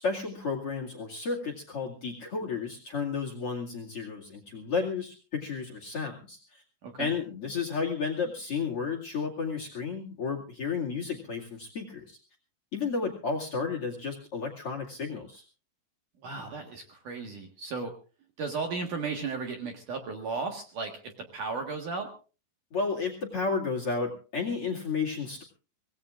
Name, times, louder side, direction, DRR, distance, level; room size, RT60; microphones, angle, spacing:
voice 1, 0.0-6.6 7.0-12.2 12.7-15.4 22.7-25.4, left 5 dB, 40° left, 5 dB, 2.5 m, -32 dB
voice 2, 16.2-17.9 18.4-22.1, right 4 dB, 55° right, 3 dB, 2.6 m, -35 dB
25.0 x 19.0 x 2.5 m, 0.36 s
omnidirectional pair, 5.1 m